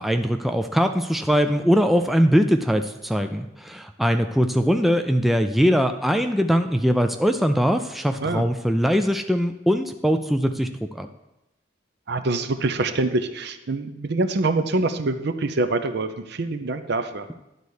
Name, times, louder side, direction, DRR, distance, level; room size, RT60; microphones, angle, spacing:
voice 1, 0.0-11.1, equal, ahead, 6 dB, 0.3 m, -21 dB
voice 2, 12.1-17.3, right 2 dB, 60° right, 10 dB, 0.6 m, -25 dB
11.0 x 4.1 x 6.4 m, 0.93 s
head